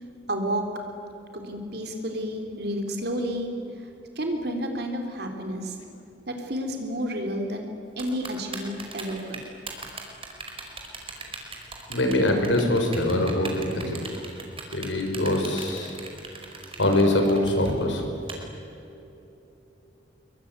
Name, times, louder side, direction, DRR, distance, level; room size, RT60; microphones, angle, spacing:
voice 1, 0.3-0.6 1.3-3.9 4.2-5.8 6.3-9.4, equal, 60° right, 3 dB, 3.5 m, -31 dB
Typing, 8.0-18.3, right 4 dB, 30° right, 4.7 m, -39 dB
voice 2, 11.9-14.0 14.7-16.0 16.8-18.0, left 1 dB, 85° left, 4 dB, 5.6 m, -23 dB
25.5 x 23.0 x 9.6 m, 2.9 s
head